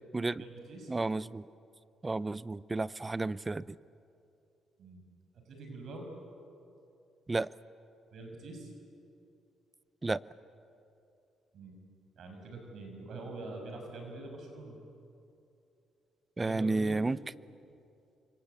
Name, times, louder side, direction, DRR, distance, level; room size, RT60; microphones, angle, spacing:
voice 1, 0.4-0.9 4.8-5.0 5.5-6.1 8.1-8.7 11.5-11.8 12.2-14.8 16.4-17.0, right 2 dB, 65° right, 3 dB, 6.4 m, -45 dB
voice 2, 0.9-1.4 2.0-3.8 7.3-7.5 10.0-10.2 16.4-17.2, right 3 dB, 20° right, 18 dB, 0.6 m, -31 dB
28.5 x 25.0 x 8.3 m, 2.7 s
cardioid pair, 90°, 0 cm